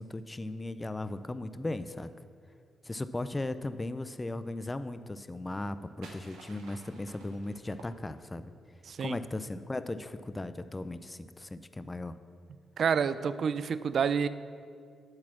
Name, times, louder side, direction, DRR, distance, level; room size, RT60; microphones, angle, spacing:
voice 1, 0.0-2.1 2.8-8.5 9.0-12.2, left 2 dB, 20° left, 12 dB, 0.4 m, -37 dB
sound 1, 5.5-8.5, right 3 dB, 90° right, 0.8 m, -53 dB
voice 2, 8.9-9.2 12.8-14.3, right 6 dB, 65° right, 14 dB, 0.3 m, -28 dB
8.7 x 4.2 x 7.2 m, 2.2 s
supercardioid pair, 60°, 0 cm